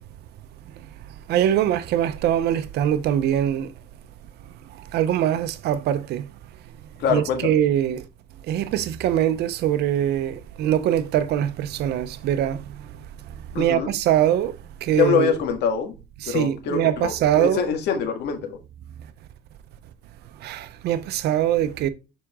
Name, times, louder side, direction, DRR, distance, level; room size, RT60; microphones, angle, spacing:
voice 1, 1.3-3.7 4.7-6.3 7.1-8.0 8.5-14.6 14.8-15.4 16.2-17.7 20.4-21.9, right 11 dB, 75° right, 0.8 m, -23 dB
voice 2, 7.0-7.6 13.5-13.9 15.0-15.9 16.3-18.6, left 7 dB, 80° left, 1.7 m, -24 dB
7.4 x 5.1 x 3.6 m
cardioid pair, 110°, 17 cm